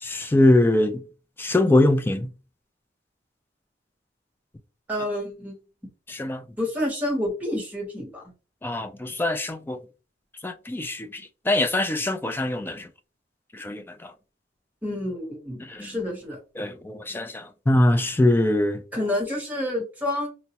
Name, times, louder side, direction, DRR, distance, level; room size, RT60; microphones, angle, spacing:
voice 1, 0.0-1.0 1.4-2.3 6.1-6.4 8.6-9.8 10.4-12.9 13.5-14.1 15.6-15.9 16.6-18.8, left 1 dB, 10° left, 0.3 m, -23 dB
voice 2, 4.9-5.6 6.6-8.2 14.8-16.4 18.9-20.3, left 1 dB, 10° right, 0.9 m, -28 dB
4.4 x 2.0 x 2.8 m
head